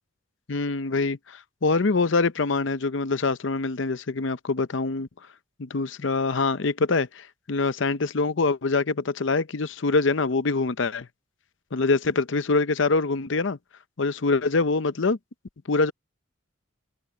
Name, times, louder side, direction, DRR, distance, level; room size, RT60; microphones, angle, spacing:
voice 1, 0.5-5.1 5.6-11.1 11.7-13.6 14.0-15.2 15.7-15.9, left 3 dB, 65° left, 0.7 m, -24 dB
head